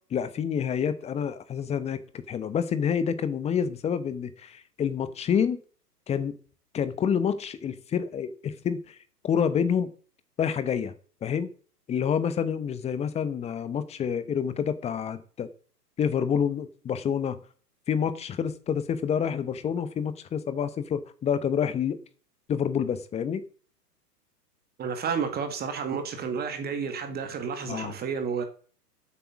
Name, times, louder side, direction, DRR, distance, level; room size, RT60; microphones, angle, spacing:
voice 1, 0.1-5.6 6.1-6.4 6.7-9.0 9.2-9.9 10.4-10.9 11.2-11.5 11.9-15.5 16.0-17.4 17.9-22.0 22.5-23.4 27.7-28.0, left 7 dB, 15° left, 1.0 m, -28 dB
voice 2, 24.8-28.4, right 6 dB, 20° right, 1.9 m, -31 dB
11.0 x 8.4 x 7.2 m
hypercardioid pair, 125°, 48 cm